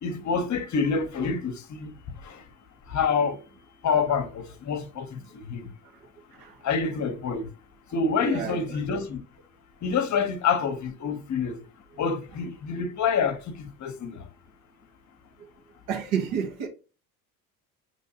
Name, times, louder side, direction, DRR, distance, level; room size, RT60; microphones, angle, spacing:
voice 1, 0.0-1.9 2.2-2.4 2.9-3.4 3.8-5.2 5.5-5.6 6.6-7.5 7.9-9.2 9.8-11.6 12.0-14.2, left 5 dB, 40° left, 0.9 m, -27 dB
voice 2, 8.2-8.6 15.4-15.5 15.9-16.7, right 7 dB, 75° right, 1.4 m, -30 dB
5.5 x 3.0 x 2.8 m
hypercardioid pair, 70°, 45 cm